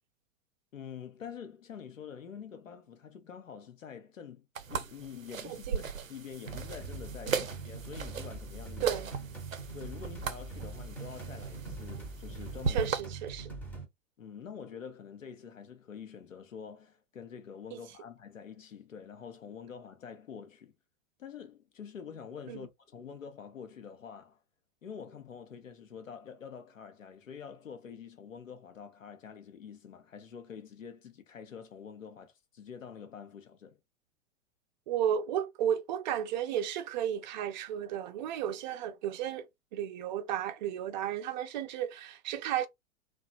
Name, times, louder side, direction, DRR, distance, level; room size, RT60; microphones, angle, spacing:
voice 1, 0.7-8.9 9.7-12.9 14.2-20.7 21.2-24.4 24.8-33.8, left 7 dB, 85° left, 0.6 m, -46 dB
sound 1, 4.5-13.0, right 5 dB, 90° right, 0.5 m, -38 dB
voice 2, 5.4-5.8 7.3-7.4 8.8-9.1 12.7-13.5 22.5-22.7 34.9-42.7, right 10 dB, 40° right, 0.4 m, -33 dB
sound 2, 6.5-13.8, right 3 dB, 5° left, 0.7 m, -43 dB
2.8 x 2.2 x 2.3 m
figure-of-eight pair, 105°, 39 cm